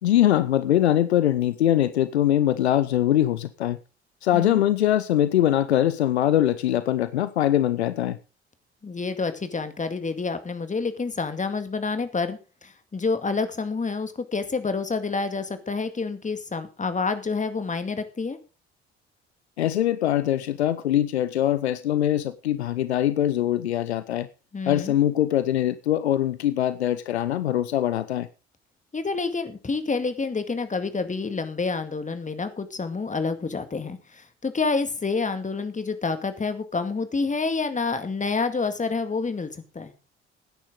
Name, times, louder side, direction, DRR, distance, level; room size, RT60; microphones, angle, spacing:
voice 1, 0.0-3.8 4.2-8.2 19.6-24.3 24.7-28.3, left 12 dB, 80° left, 0.6 m, -22 dB
voice 2, 8.8-18.4 24.5-24.9 28.9-39.9, left 4 dB, 20° left, 2.2 m, -28 dB
16.5 x 9.9 x 3.8 m
figure-of-eight pair, 50°, 33 cm